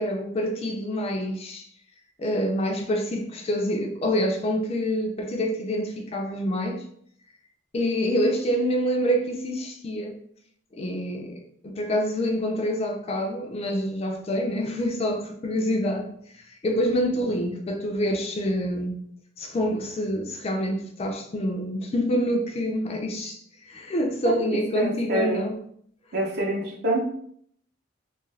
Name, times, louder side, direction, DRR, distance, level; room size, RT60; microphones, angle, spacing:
voice 1, 0.0-1.7 2.2-6.9 7.7-10.2 10.7-19.0 19.4-25.6, equal, 30° left, 0.3 m, -27 dB
voice 2, 24.2-25.4 26.1-27.0, right 2 dB, 55° right, 0.7 m, -27 dB
2.7 x 2.3 x 3.1 m
head